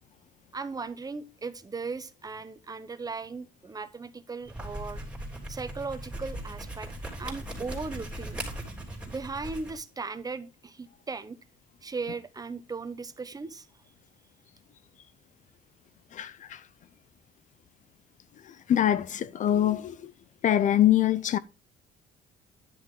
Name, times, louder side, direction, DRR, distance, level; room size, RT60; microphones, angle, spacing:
voice 1, 0.5-5.1 5.5-6.9 7.2-8.4 9.1-11.4 11.8-13.7, right 4 dB, 20° right, 1.0 m, -37 dB
sound 1, 4.4-9.8, right 1 dB, 5° right, 3.3 m, -39 dB
voice 2, 16.1-16.6 18.7-20.1 20.4-21.4, left 11 dB, 50° left, 0.5 m, -24 dB
10.5 x 6.2 x 3.7 m
cardioid pair, 110°, 17 cm